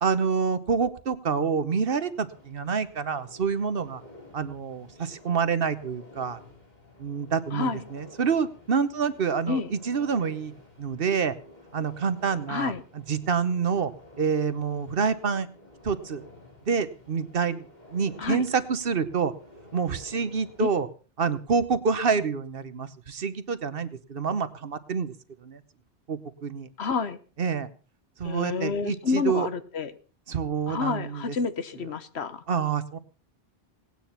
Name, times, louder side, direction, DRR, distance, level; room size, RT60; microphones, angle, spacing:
voice 1, 0.0-4.0 4.3-6.4 7.0-10.5 10.8-11.3 11.7-12.7 13.1-13.9 14.2-15.5 15.8-16.2 16.7-17.6 17.9-19.3 19.7-20.9 21.2-25.1 25.4-25.6 26.1-26.7 27.4-27.7 28.2-29.5 30.3-31.4 32.5-33.0, right 6 dB, 60° right, 13 dB, 1.1 m, -27 dB
sound 1, 1.9-20.8, left 1 dB, 40° left, 3.9 m, -51 dB
voice 2, 7.5-7.8 9.5-9.7 12.5-12.8 18.2-18.4 20.6-20.7 26.8-27.2 28.2-29.9 30.7-32.4, left 5 dB, 70° left, 12 dB, 1.3 m, -29 dB
18.0 x 9.4 x 5.7 m, 0.39 s
omnidirectional pair, 1.1 m